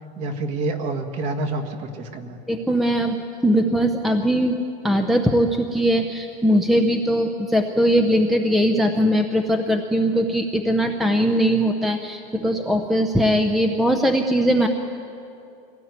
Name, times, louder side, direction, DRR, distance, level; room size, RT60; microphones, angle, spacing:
voice 1, 0.2-2.4, right 2 dB, 35° right, 7 dB, 1.7 m, -28 dB
voice 2, 2.5-4.6 4.8-14.7, equal, ahead, 5 dB, 0.6 m, -20 dB
23.0 x 17.5 x 9.5 m, 2.6 s
supercardioid pair, 180°, 20 cm